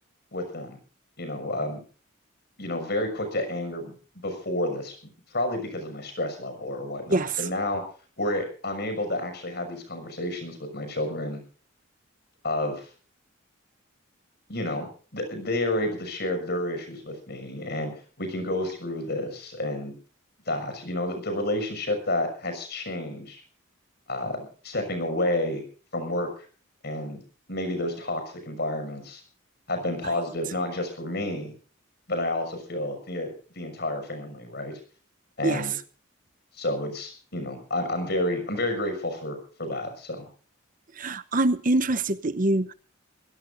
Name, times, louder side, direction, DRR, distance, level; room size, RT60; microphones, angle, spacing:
voice 1, 0.3-0.8 1.2-1.8 2.6-3.9 4.2-7.8 8.2-11.4 12.4-12.8 14.5-17.9 18.2-19.9 20.5-23.4 24.1-25.6 25.9-26.3 26.8-27.2 27.5-29.2 29.7-31.5 32.1-34.8 35.4-35.7 36.5-40.3, left 1 dB, 50° left, 6.4 m, -30 dB
voice 2, 7.1-7.5 30.0-30.1 35.4-35.7 40.9-42.7, right 2 dB, 40° right, 0.8 m, -25 dB
25.0 x 17.0 x 2.6 m
head